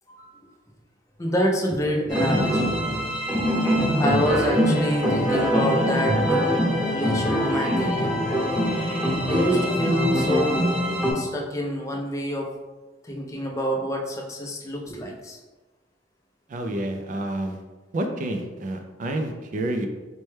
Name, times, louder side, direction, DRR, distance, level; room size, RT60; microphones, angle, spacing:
voice 1, 1.2-3.0 3.3-3.5 3.7-8.1 9.3-10.7 11.1-12.5 13.0-15.4, equal, 15° left, 0 dB, 0.4 m, -27 dB
sound 1, 2.1-11.1, equal, 5° right, 1.0 m, -23 dB
voice 2, 16.5-17.6 17.9-19.9, right 1 dB, 45° right, 4 dB, 0.3 m, -29 dB
4.1 x 2.2 x 3.2 m, 1.2 s
head